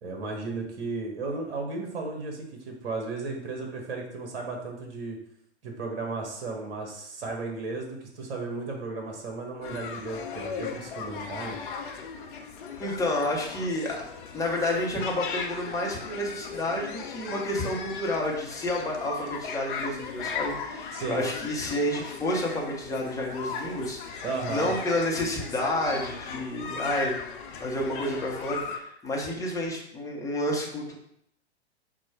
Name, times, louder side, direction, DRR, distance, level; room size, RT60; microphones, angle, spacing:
voice 1, 0.0-5.2 5.6-11.6 20.9-21.2 24.2-24.7, right 3 dB, 55° right, 1 dB, 1.3 m, -34 dB
sound 1, 9.6-28.8, left 5 dB, 50° left, 0.7 m, -37 dB
voice 2, 12.8-14.0 14.3-27.2 27.6-30.9, left 1 dB, 10° left, -2 dB, 0.8 m, -30 dB
4.5 x 2.2 x 4.4 m, 0.70 s
figure-of-eight pair, 110°, 33 cm